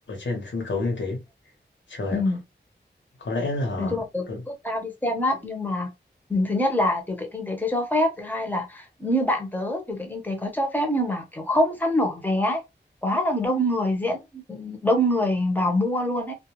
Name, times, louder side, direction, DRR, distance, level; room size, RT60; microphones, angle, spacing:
voice 1, 0.1-1.2 1.9-2.2 3.2-4.0 4.3-4.4, left 2 dB, 85° left, 1.1 m, -28 dB
voice 2, 3.8-5.9 6.3-12.6 13.0-16.3, left 1 dB, 10° left, 1.0 m, -25 dB
2.4 x 2.3 x 3.0 m
wide cardioid pair, 75°, 19 cm